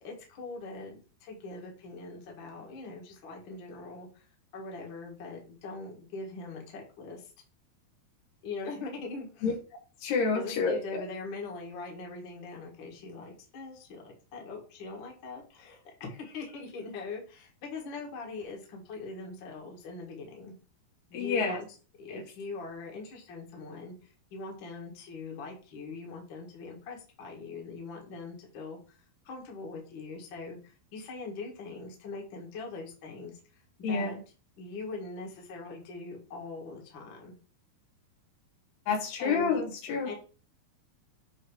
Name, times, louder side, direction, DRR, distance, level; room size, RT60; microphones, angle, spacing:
voice 1, 0.0-4.3 4.5-7.3 8.4-9.5 10.3-20.5 21.1-21.7 22.0-29.0 29.2-33.4 33.9-34.2 34.6-37.3 39.2-39.5 40.0-40.1, left 3 dB, 45° left, 0 dB, 1.6 m, -42 dB
voice 2, 10.0-11.0 21.1-21.6 22.1-22.2 33.8-34.1 38.9-40.1, left 4 dB, 90° left, 2 dB, 3.6 m, -29 dB
8.2 x 3.0 x 4.7 m, 0.37 s
omnidirectional pair, 4.5 m